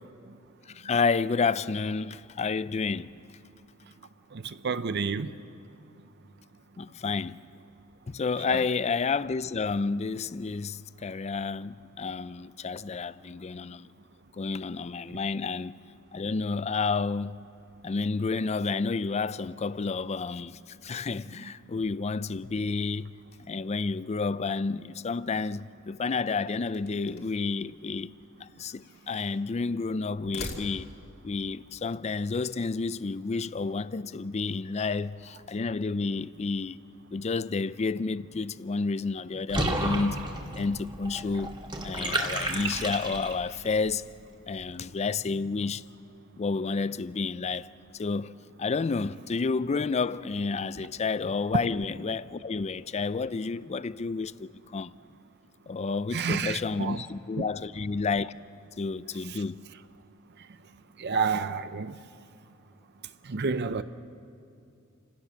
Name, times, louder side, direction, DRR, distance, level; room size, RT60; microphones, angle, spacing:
voice 1, 0.7-3.1 6.8-7.4 8.1-13.9 14.4-15.7 16.1-17.4 17.8-23.1 23.5-28.1 28.4-30.9 31.2-36.8 37.1-40.2 40.6-41.6 41.8-44.0 44.5-45.8 46.4-47.7 48.0-48.3 48.6-54.9 55.7-58.3 58.8-59.6, left 4 dB, 30° left, 0.4 m, -30 dB
voice 2, 4.3-5.3 8.5-8.6 15.1-15.2 42.4-42.6 56.1-57.0 57.4-57.5 59.3-59.4 61.0-62.0 63.2-63.8, right 5 dB, 55° right, 0.6 m, -30 dB
sound 1, 26.7-27.5 28.4-29.5 30.1-31.2, left 2 dB, 50° left, 2.5 m, -43 dB
Water / Bathtub (filling or washing), 39.5-43.6, right 1 dB, 25° right, 2.1 m, -32 dB
29.5 x 16.5 x 6.4 m
head